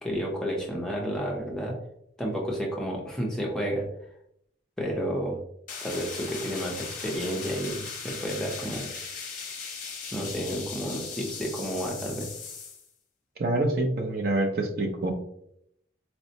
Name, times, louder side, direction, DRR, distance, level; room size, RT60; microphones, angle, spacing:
voice 1, 0.0-1.7 2.2-3.8 4.8-5.4 5.8-8.9 10.1-12.3, equal, 5° left, -3 dB, 0.6 m, -31 dB
sound 1, 5.7-12.9, left 5 dB, 45° left, 0.7 m, -38 dB
voice 2, 13.4-15.1, right 2 dB, 50° right, 2 dB, 0.5 m, -26 dB
4.2 x 2.0 x 2.7 m, 0.72 s
head